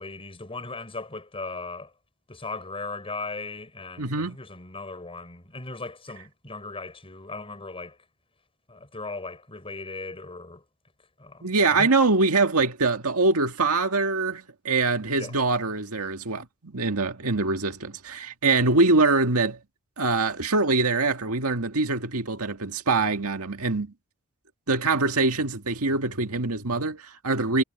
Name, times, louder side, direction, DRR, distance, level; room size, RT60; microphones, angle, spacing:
voice 1, 0.0-1.9 2.3-8.0 8.7-10.6 11.2-11.9 15.1-15.4, left 3 dB, 25° left, 6.0 m, -38 dB
voice 2, 4.0-4.4 11.4-19.6 20.0-23.9 24.7-27.6, right 3 dB, 75° right, 2.0 m, -24 dB
head